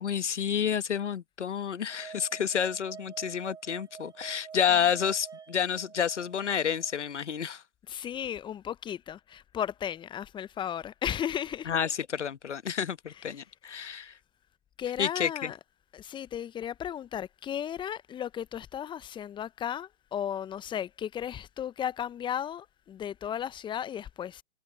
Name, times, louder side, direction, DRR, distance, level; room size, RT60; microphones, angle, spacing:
voice 1, 0.0-7.6 11.7-14.1 15.0-15.5, left 8 dB, 75° left, 1.3 m, -29 dB
sound 1, 1.9-7.0, right 7 dB, 10° right, 1.9 m, -47 dB
voice 2, 4.5-4.9 7.8-11.7 13.0-14.0 14.8-15.6 15.9-24.4, left 9 dB, 15° left, 0.8 m, -35 dB
figure-of-eight pair, 115°, 36 cm